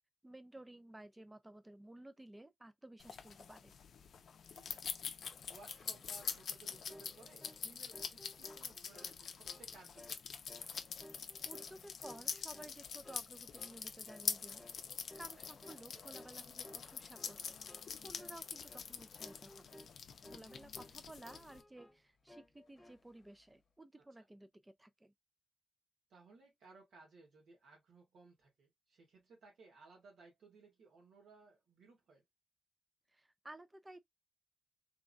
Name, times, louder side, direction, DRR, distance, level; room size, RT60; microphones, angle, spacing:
voice 1, 0.2-3.8 11.4-14.6 15.1-19.8 20.3-25.1 33.1-34.0, right 1 dB, 15° right, 0.4 m, -55 dB
sound 1, 3.0-21.6, left 6 dB, 70° left, 0.5 m, -45 dB
voice 2, 4.4-5.0 5.5-10.4 15.9-16.1 26.1-32.2, right 3 dB, 90° right, 1.5 m, -61 dB
Skateboard, 5.1-23.7, left 5 dB, 55° left, 0.9 m, -66 dB
sound 2, 6.9-7.1 7.4-7.6 7.9-9.1 9.4-9.7 10.0-10.2 10.5-10.7 11.0-11.8 12.0-12.8 13.0-13.3 13.6-13.8 14.1-14.3 14.6-14.8 15.1-15.3 15.6-15.8 16.1-16.3 16.6-16.9 17.2-17.3 17.7-17.9 18.2-18.4 18.7-18.9 19.2-19.9 20.2-21.0 21.2-22.0 22.3-23.0, left 1 dB, 10° left, 0.7 m, -57 dB
3.4 x 2.2 x 2.5 m
wide cardioid pair, 115°, 0 cm